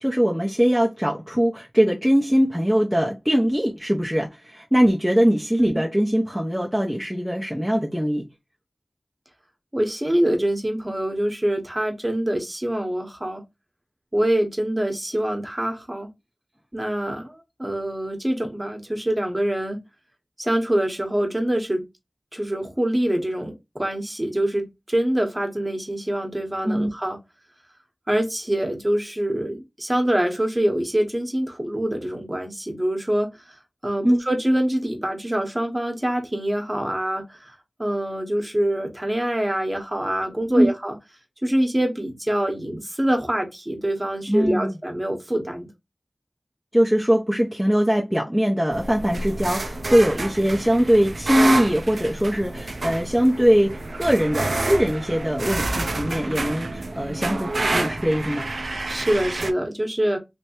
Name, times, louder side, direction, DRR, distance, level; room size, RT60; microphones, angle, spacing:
voice 1, 0.0-8.3 26.6-26.9 34.0-34.2 40.6-40.7 44.3-44.8 46.7-58.6, equal, ahead, 0.7 m, -21 dB
voice 2, 9.7-13.4 14.1-16.1 16.7-19.8 20.4-21.8 22.3-27.2 28.1-33.3 33.8-37.5 37.8-41.0 41.4-45.7 58.9-60.2, right 1 dB, 20° right, 1.1 m, -25 dB
sound 1, 48.7-59.5, right 2 dB, 80° right, 0.4 m, -28 dB
3.3 x 2.9 x 2.9 m
wide cardioid pair, 55°, 0 cm